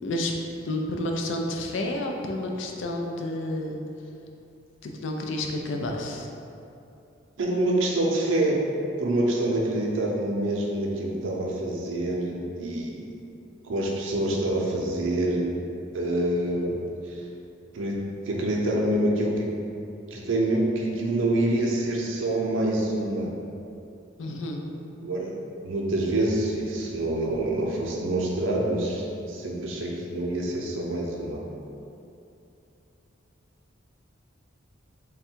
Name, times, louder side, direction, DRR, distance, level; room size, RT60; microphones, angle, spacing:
voice 1, 0.0-0.3 0.6-3.8 4.8-6.3 24.2-24.6, left 1 dB, 65° left, 2 dB, 0.4 m, -30 dB
voice 2, 7.4-8.6 9.0-13.1 13.6-15.5 15.9-16.8 17.0-17.2 17.7-18.0 18.3-19.5 20.1-23.3 25.0-25.3 25.6-31.4, right 1 dB, 70° right, -2 dB, 0.6 m, -26 dB
3.5 x 2.2 x 4.3 m, 2.7 s
head